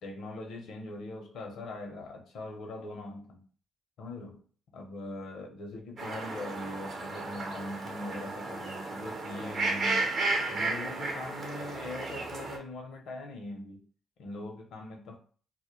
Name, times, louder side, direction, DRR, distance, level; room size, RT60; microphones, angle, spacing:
voice 1, 0.0-3.4 4.0-4.4 4.7-10.0 10.5-13.8 14.2-15.2, left 2 dB, 75° left, 0.6 m, -41 dB
sound 1, 6.0-12.6, right 3 dB, 60° right, 0.7 m, -33 dB
2.1 x 2.1 x 2.9 m
supercardioid pair, 65°, 0 cm